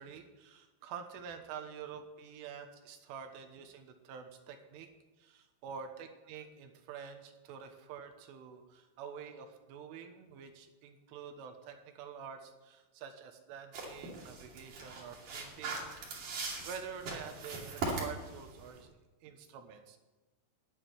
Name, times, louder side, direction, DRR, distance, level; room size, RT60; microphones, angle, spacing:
voice 1, 0.0-4.9 5.2-15.9 16.7-19.0 19.2-20.0, right 7 dB, 75° right, 5 dB, 3.7 m, -47 dB
sound 1, 13.7-18.8, right 3 dB, 45° right, 3.6 m, -40 dB
10.5 x 9.8 x 9.5 m, 1.2 s
omnidirectional pair, 5.8 m